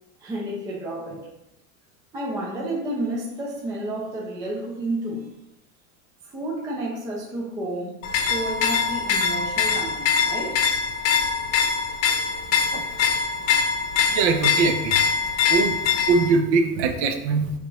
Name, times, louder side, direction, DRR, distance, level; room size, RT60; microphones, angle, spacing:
voice 1, 0.2-1.3 2.1-5.3 6.2-10.6, right 1 dB, 10° right, -2 dB, 0.3 m, -31 dB
sound 1, 8.0-16.3, left 6 dB, 55° left, 0.8 m, -23 dB
voice 2, 14.1-15.0 15.5-15.8 16.1-17.5, right 4 dB, 55° right, 6 dB, 0.7 m, -21 dB
4.8 x 3.5 x 3.1 m, 0.88 s
supercardioid pair, 160°, 40 cm